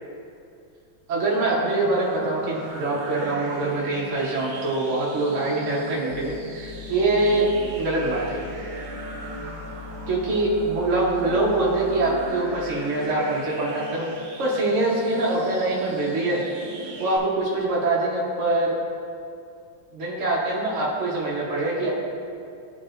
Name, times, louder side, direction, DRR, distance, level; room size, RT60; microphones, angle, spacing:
voice 1, 1.1-7.5 7.8-8.4 10.1-14.1 14.4-16.4 17.0-18.8 19.9-21.9, right 2 dB, 45° right, -5 dB, 1.1 m, -24 dB
sound 1, 1.2-17.2, right 1 dB, 70° right, 1.4 m, -38 dB
sound 2, 6.1-12.3, left 7 dB, 70° left, 1.3 m, -42 dB
11.5 x 4.7 x 2.5 m, 2.4 s
omnidirectional pair, 2.2 m